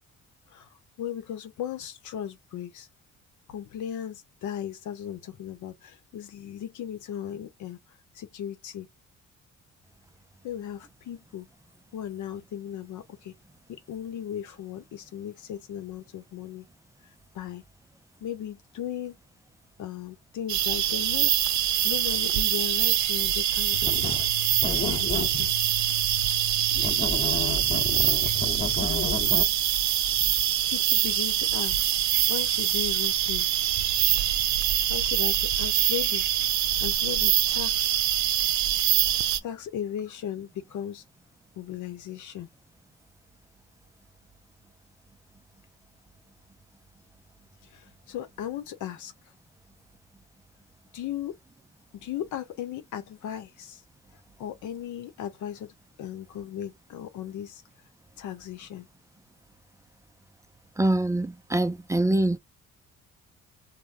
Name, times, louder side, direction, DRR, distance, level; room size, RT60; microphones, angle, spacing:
voice 1, 1.0-2.9 3.5-7.8 8.1-8.9 10.4-11.5 11.9-13.3 13.7-16.7 17.3-17.6 18.2-19.2 19.8-21.3 21.8-24.1 24.8-25.5 30.3-30.4 30.7-31.8 32.3-33.5 34.9-36.2 36.8-38.0 39.4-41.0 41.6-42.5 47.7-49.1 50.9-51.4 51.9-53.8 54.4-57.6 58.2-58.9, left 10 dB, 80° left, 0.8 m, -36 dB
sound 1, 20.5-39.4, right 11 dB, 70° right, 0.6 m, -24 dB
sound 2, 23.7-29.4, left 3 dB, 30° left, 1.0 m, -32 dB
voice 2, 60.8-62.4, right 1 dB, 10° right, 0.3 m, -24 dB
3.4 x 2.1 x 2.4 m
cardioid pair, 90°, 30 cm